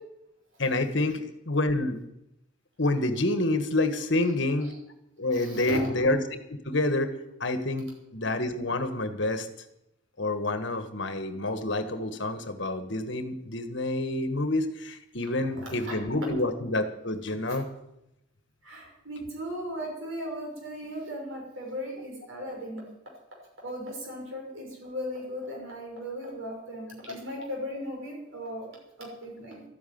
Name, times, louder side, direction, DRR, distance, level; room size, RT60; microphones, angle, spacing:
voice 1, 0.6-2.0 2.8-4.7 5.2-6.2 6.6-7.1 7.4-9.5 10.2-17.7, left 2 dB, 60° left, 9 dB, 1.5 m, -28 dB
voice 2, 5.3-5.9 15.8-15.9 16.2-16.4 17.5-17.6 18.6-22.9 23.6-29.6, equal, 70° right, -1 dB, 6.1 m, -37 dB
13.0 x 9.3 x 9.4 m, 0.85 s
head